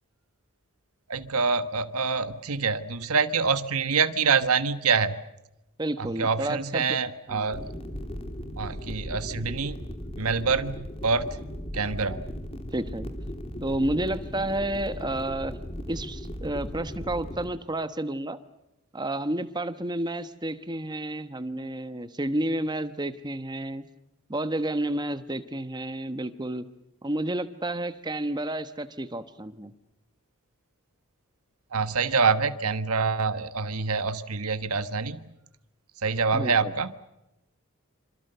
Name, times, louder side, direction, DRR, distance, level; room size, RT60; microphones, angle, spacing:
voice 1, 1.1-5.2 6.0-7.6 8.6-9.8 10.2-11.4 11.7-12.2 31.7-35.2 36.0-36.9, right 5 dB, 80° right, 12 dB, 1.3 m, -26 dB
voice 2, 5.8-7.0 7.3-7.6 12.7-13.1 13.6-15.6 15.9-18.4 18.9-23.8 24.3-26.7 27.0-29.7 36.3-36.7, right 1 dB, 20° right, 11 dB, 1.1 m, -31 dB
sound 1, 7.5-17.5, equal, 25° left, 2.9 m, -37 dB
26.5 x 26.5 x 6.8 m, 0.91 s
head